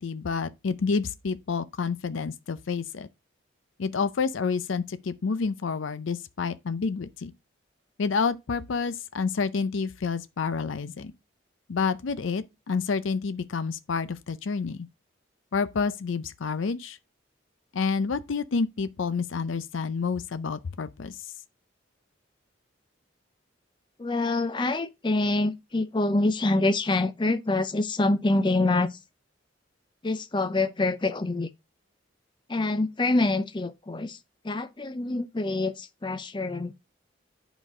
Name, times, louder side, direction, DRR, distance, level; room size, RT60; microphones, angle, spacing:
voice 1, 0.0-3.1 3.8-7.3 8.0-11.1 11.7-14.9 15.5-17.0 17.7-21.1, left 5 dB, 80° left, 0.5 m, -29 dB
voice 2, 24.0-28.9 30.0-31.5 32.5-34.2 34.4-36.7, left 2 dB, 25° left, 0.5 m, -26 dB
8.6 x 5.1 x 3.7 m
head